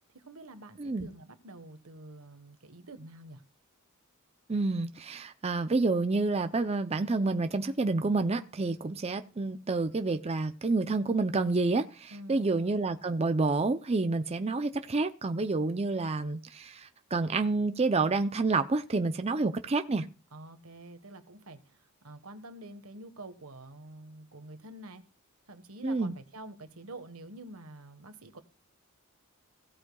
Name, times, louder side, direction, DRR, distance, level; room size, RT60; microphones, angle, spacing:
voice 1, 0.1-3.4 12.1-12.5 20.3-25.0 25.5-28.4, right 2 dB, 85° right, 1.4 m, -47 dB
voice 2, 4.5-20.1 25.8-26.1, right 3 dB, 30° right, 0.6 m, -29 dB
17.0 x 8.4 x 2.3 m
head